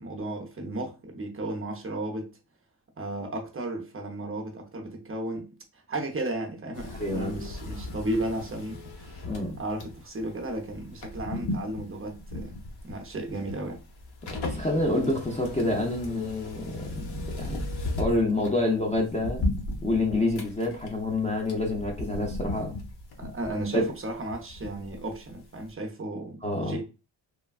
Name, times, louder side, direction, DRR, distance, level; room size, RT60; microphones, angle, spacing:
voice 1, 0.0-2.3 3.0-9.3 9.6-12.6 12.8-13.8 23.2-26.8, right 1 dB, 25° right, 0.6 m, -34 dB
sound 1, 6.7-25.4 25.6-25.7, left 2 dB, 55° left, 0.9 m, -36 dB
voice 2, 7.0-7.4 9.2-9.6 14.3-17.7 18.0-19.4 19.8-22.7 23.7-23.9 26.4-26.8, left 2 dB, 15° left, 0.4 m, -27 dB
3.3 x 2.2 x 2.3 m
cardioid pair, 110°, 49 cm